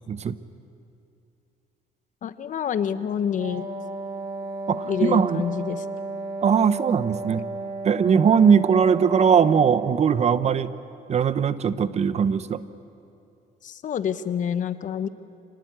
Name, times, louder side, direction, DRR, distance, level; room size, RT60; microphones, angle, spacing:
voice 1, 2.2-3.7 4.8-5.8 13.6-15.1, left 8 dB, 50° left, 12 dB, 1.1 m, -27 dB
Wind instrument woodwind instrument, 3.4-10.1, right 3 dB, 65° right, 4.7 m, -33 dB
voice 2, 4.7-5.4 6.4-7.4 7.8-10.7 11.1-12.6, right 7 dB, 40° right, 14 dB, 0.9 m, -20 dB
26.5 x 19.0 x 9.1 m, 2.6 s
cardioid pair, 110°, 17 cm